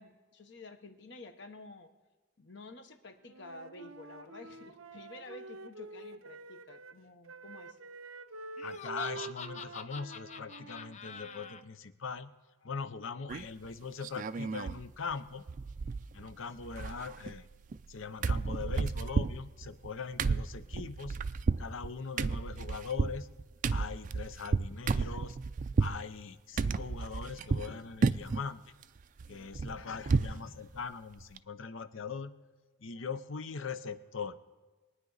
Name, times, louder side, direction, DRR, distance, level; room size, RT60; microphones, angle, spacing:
voice 1, 0.0-1.9 2.4-7.8, left 2 dB, 60° left, 7 dB, 1.1 m, -50 dB
Wind instrument woodwind instrument, 3.3-7.0 7.3-11.6, right 4 dB, 85° right, 0.6 m, -47 dB
voice 2, 8.6-12.3 12.6-15.4 16.1-17.5 17.9-21.2 21.6-23.3 23.7-25.4 25.8-28.7 29.3-32.3 32.8-34.4, left 5 dB, 75° left, 13 dB, 0.7 m, -41 dB
Laughter, 8.6-11.6, left 6 dB, 35° left, 0.5 m, -45 dB
sound 1, 13.3-13.7 14.0-14.8 15.1-15.2 15.5-16.3 16.6-17.9 18.2-26.0 26.6-27.7 28.0-28.5 28.8-30.4 30.8-30.9 31.2-31.4, right 4 dB, 40° right, 0.3 m, -32 dB
23.0 x 9.6 x 4.0 m, 1.3 s
head